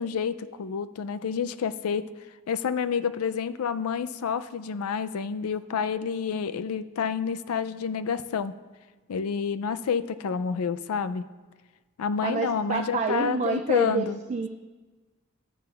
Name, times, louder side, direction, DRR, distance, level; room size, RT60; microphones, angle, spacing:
voice 1, 0.0-2.1 2.5-8.6 9.1-11.2 12.0-14.2, left 6 dB, 80° left, 13 dB, 0.4 m, -29 dB
voice 2, 12.2-14.5, right 5 dB, 30° right, 4 dB, 0.3 m, -28 dB
12.0 x 10.0 x 2.4 m, 1.3 s
head